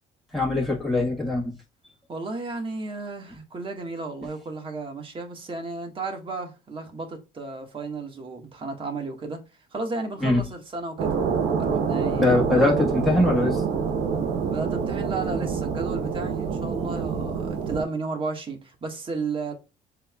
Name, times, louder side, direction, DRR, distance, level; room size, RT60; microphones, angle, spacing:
voice 1, 0.3-1.6 10.2-10.4 12.2-13.6, left 2 dB, ahead, 1.5 m, -22 dB
voice 2, 2.1-9.4 9.7-11.1 11.6-12.4 14.5-19.5, right 3 dB, 30° right, 1.6 m, -33 dB
sound 1, 11.0-17.8, right 6 dB, 80° right, 1.0 m, -26 dB
7.4 x 2.9 x 2.3 m
cardioid pair, 110°, 17 cm